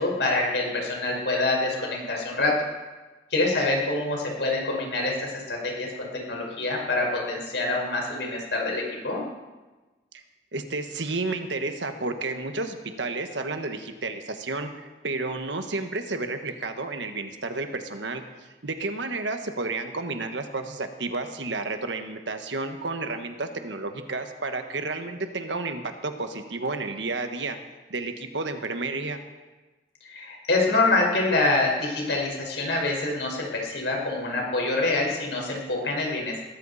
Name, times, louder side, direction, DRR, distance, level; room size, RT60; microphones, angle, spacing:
voice 1, 0.0-2.6 3.3-5.9 6.1-9.2 30.0-36.4, left 2 dB, 75° left, -1 dB, 5.0 m, -26 dB
voice 2, 10.5-27.6 27.9-29.2, right 3 dB, 85° right, 6 dB, 1.4 m, -31 dB
20.5 x 14.0 x 4.2 m, 1.2 s
head